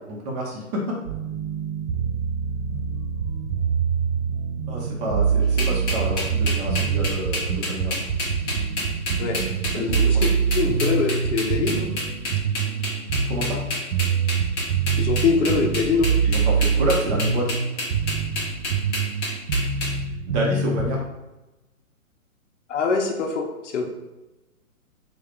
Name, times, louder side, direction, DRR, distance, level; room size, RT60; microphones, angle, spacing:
voice 1, 0.1-1.0 4.7-8.0 9.7-10.3 13.3-13.6 16.2-17.5 20.3-21.0, equal, 30° right, -3 dB, 0.8 m, -28 dB
sound 1, 1.1-21.0, right 6 dB, 70° right, 0.6 m, -25 dB
sound 2, 5.6-19.9, left 2 dB, 20° left, 0.6 m, -29 dB
voice 2, 9.7-10.3 10.5-11.9 15.0-16.1 22.7-23.9, left 4 dB, 55° left, 3 dB, 0.7 m, -23 dB
3.5 x 2.3 x 3.3 m, 1.0 s
hypercardioid pair, 135°, 42 cm